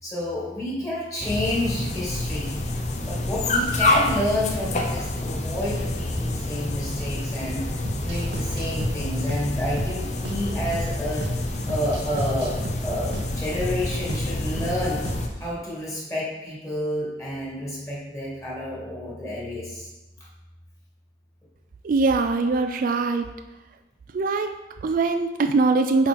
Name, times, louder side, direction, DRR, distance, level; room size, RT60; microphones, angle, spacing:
voice 1, 0.0-2.5 3.0-7.6 8.0-11.3 11.7-15.1 15.4-19.9, left 1 dB, 20° left, -7 dB, 2.4 m, -30 dB
sound 1, 1.2-15.3, left 1 dB, 40° left, 0.7 m, -28 dB
sound 2, 7.9-15.5, right 1 dB, 70° right, 0.8 m, -35 dB
voice 2, 21.8-23.3 24.1-26.1, right 3 dB, 50° right, 7 dB, 0.4 m, -22 dB
8.0 x 4.4 x 3.7 m, 1.1 s
head